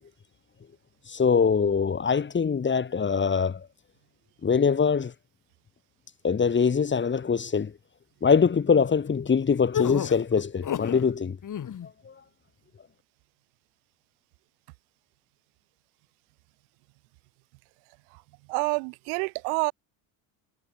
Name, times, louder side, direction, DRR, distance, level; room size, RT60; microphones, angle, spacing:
voice 1, 1.1-3.6 4.4-5.1 6.2-7.7 8.2-11.4 12.0-12.1, left 6 dB, 25° left, 1.7 m, -23 dB
sound 1, 9.7-11.1 11.4-11.9, left 9 dB, 40° left, 5.1 m, -31 dB
voice 2, 18.5-19.7, right 40 dB or more, 80° right, 3.2 m, -27 dB
supercardioid pair, 90°, 45 cm